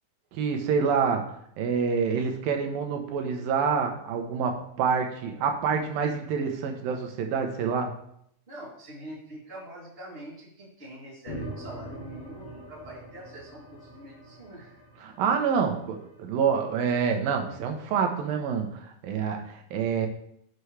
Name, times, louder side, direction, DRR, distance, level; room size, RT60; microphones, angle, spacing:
voice 1, 0.3-7.9 15.0-20.1, right 6 dB, 70° right, 4 dB, 2.8 m, -27 dB
voice 2, 8.5-14.8, right 1 dB, 15° right, -6 dB, 3.1 m, -44 dB
sound 1, 11.3-15.9, right 1 dB, 65° left, 3.7 m, -42 dB
10.5 x 8.0 x 3.4 m, 0.70 s
omnidirectional pair, 4.4 m